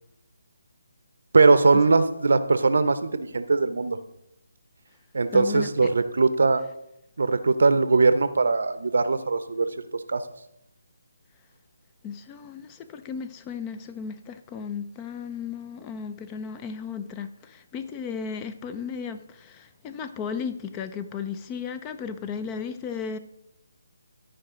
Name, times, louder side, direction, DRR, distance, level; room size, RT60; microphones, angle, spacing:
voice 1, 1.3-4.0 5.1-6.6 7.2-9.7 10.1-10.2, right 3 dB, 70° right, 0.7 m, -20 dB
voice 2, 5.3-5.9 12.0-23.2, left 6 dB, 20° left, 0.4 m, -35 dB
13.0 x 4.8 x 3.7 m
hypercardioid pair, 160°, 0 cm